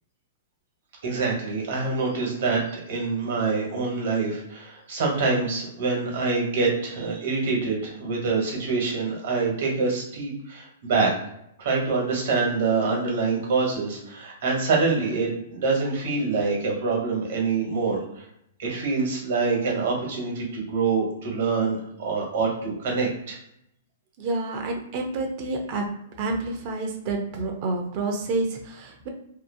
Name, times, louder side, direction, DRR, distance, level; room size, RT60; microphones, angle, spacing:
voice 1, 1.0-11.1 11.6-18.2 18.6-23.4, right 4 dB, 65° right, -2 dB, 1.2 m, -25 dB
voice 2, 24.2-25.8 26.2-29.1, right 3 dB, 40° right, 2 dB, 0.6 m, -29 dB
2.7 x 2.0 x 2.6 m, 0.76 s
hypercardioid pair, 155°, 0 cm